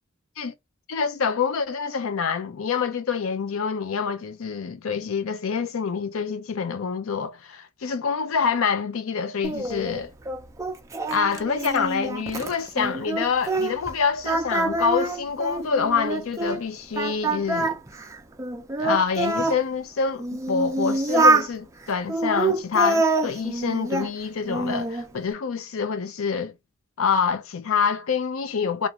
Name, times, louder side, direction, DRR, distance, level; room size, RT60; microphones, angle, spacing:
voice 1, 0.9-10.1 11.1-17.8 18.8-26.5 27.0-28.9, left 6 dB, 80° left, 0.5 m, -26 dB
Singing, 9.4-13.9 14.2-16.6 17.0-19.6 20.2-21.5 22.1-24.1 24.5-25.1, right 2 dB, 15° right, 0.4 m, -25 dB
2.5 x 2.4 x 2.9 m
head